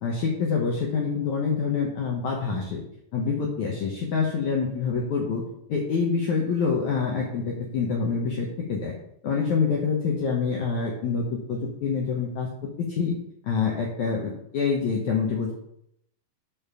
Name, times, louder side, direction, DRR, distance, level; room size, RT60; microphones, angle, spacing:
voice 1, 0.0-2.8 3.1-5.4 5.7-8.9 9.2-12.5 12.8-13.2 13.4-15.5, left 5 dB, 70° left, -1 dB, 1.8 m, -26 dB
6.8 x 5.5 x 6.8 m, 0.74 s
omnidirectional pair, 5.0 m